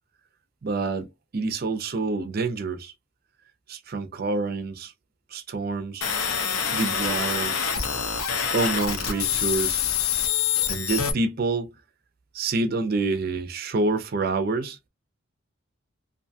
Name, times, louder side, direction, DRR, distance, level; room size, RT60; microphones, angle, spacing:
voice 1, 0.6-2.9 3.7-4.9 5.3-6.1 6.7-7.5 8.5-9.8 10.7-11.8 12.3-14.8, right 3 dB, 45° right, 0.4 m, -27 dB
sound 1, 6.0-11.1, left 8 dB, 85° left, 0.6 m, -26 dB
2.6 x 2.2 x 2.6 m
head